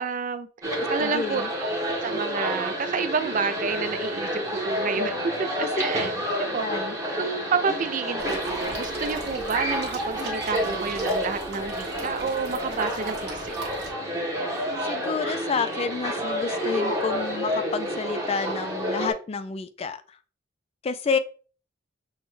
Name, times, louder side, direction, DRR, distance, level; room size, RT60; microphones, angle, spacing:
voice 1, 0.0-6.1 6.4-6.7 7.2-13.6, right 5 dB, 45° right, 10 dB, 0.4 m, -30 dB
sound 1, 0.6-19.1, equal, 15° right, 1.1 m, -29 dB
voice 2, 1.0-1.5 5.6-5.7 6.6-6.9 14.8-20.0 20.8-21.2, left 5 dB, 30° left, 12 dB, 0.3 m, -29 dB
sound 2, 8.2-13.9, right 3 dB, 60° right, 1.3 m, -41 dB
6.2 x 2.2 x 3.1 m, 0.38 s
head